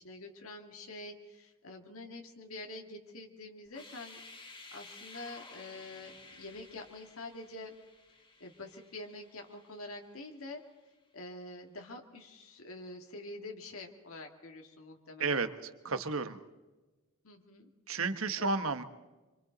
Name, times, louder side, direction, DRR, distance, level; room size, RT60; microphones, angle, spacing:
voice 1, 0.0-4.2 4.7-7.7 8.4-10.6 11.1-15.5 17.2-18.0 18.4-18.6, left 2 dB, 80° left, 2 dB, 2.1 m, -46 dB
sound 1, 3.7-10.5, left 3 dB, 25° left, 2.2 m, -54 dB
voice 2, 15.8-16.4 17.9-18.8, right 4 dB, 75° right, 9 dB, 1.3 m, -31 dB
26.0 x 25.5 x 4.0 m, 1.2 s
head